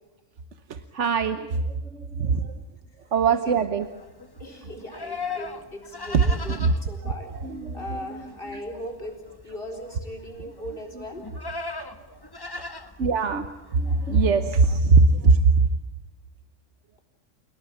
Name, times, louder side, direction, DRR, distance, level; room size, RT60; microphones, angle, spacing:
voice 1, 0.7-2.6 3.1-3.9 6.1-6.2 6.5-6.7 7.0-8.6 11.0-11.1 11.8-11.9 12.5-12.7 13.0-13.5 13.7-15.7, right 4 dB, 70° right, 9 dB, 1.3 m, -22 dB
Livestock farm animals working animals, 3.8-14.8, left 4 dB, 20° left, 1.3 m, -39 dB
voice 2, 4.4-7.3 7.7-11.3, left 1 dB, 45° left, 3 dB, 4.3 m, -38 dB
30.0 x 18.0 x 8.6 m, 1.1 s
omnidirectional pair, 1.3 m